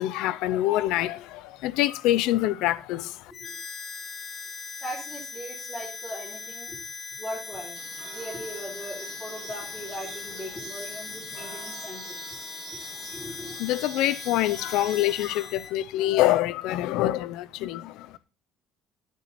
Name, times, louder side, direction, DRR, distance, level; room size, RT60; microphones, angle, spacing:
voice 1, 0.0-3.3 13.6-18.2, left 15 dB, 75° left, 0.5 m, -25 dB
Harmonica, 3.3-15.7, left 5 dB, 40° left, 1.1 m, -39 dB
voice 2, 4.8-6.8 7.2-7.7 8.1-12.5 13.1-13.5, equal, 10° left, 3.5 m, -39 dB
sound 1, 7.7-15.3, right 10 dB, 55° right, 1.1 m, -46 dB
9.7 x 8.5 x 4.2 m
cardioid pair, 165°, 0 cm